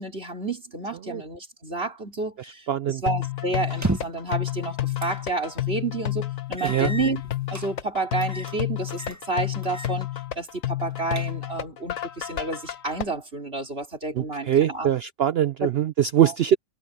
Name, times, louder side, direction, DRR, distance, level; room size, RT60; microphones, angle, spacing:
voice 1, 0.0-7.2 7.5-10.1 10.4-14.9 15.6-15.7 16.2-16.3, right 3 dB, 40° right, 4.6 m, -30 dB
voice 2, 2.7-3.0 6.6-6.9 14.1-16.6, right 10 dB, 75° right, 0.5 m, -22 dB
sound 1, 3.1-13.0, left 14 dB, 65° left, 1.4 m, -30 dB
sound 2, 3.7-4.3 5.0-5.2 5.6-5.7 6.6-7.7 8.2-8.6 8.9-9.2 9.6-10.0 10.3-10.4 10.9-11.6, right 1 dB, 10° right, 1.5 m, -32 dB
omnidirectional pair, 1.6 m